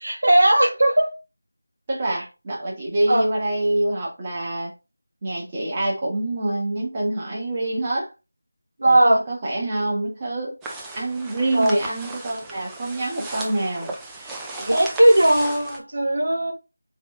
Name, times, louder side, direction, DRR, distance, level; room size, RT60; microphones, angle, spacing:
voice 1, 0.0-1.1 3.1-3.2 8.8-9.2 11.5-11.8 14.2-16.5, right 1 dB, 60° right, 1.4 m, -18 dB
voice 2, 1.9-4.7 5.2-8.1 8.8-10.5 10.9-13.9, right 1 dB, 20° right, 1.3 m, -26 dB
sound 1, 10.6-15.8, right 2 dB, 5° right, 0.4 m, -36 dB
4.2 x 3.5 x 3.1 m
figure-of-eight pair, 170°, 0 cm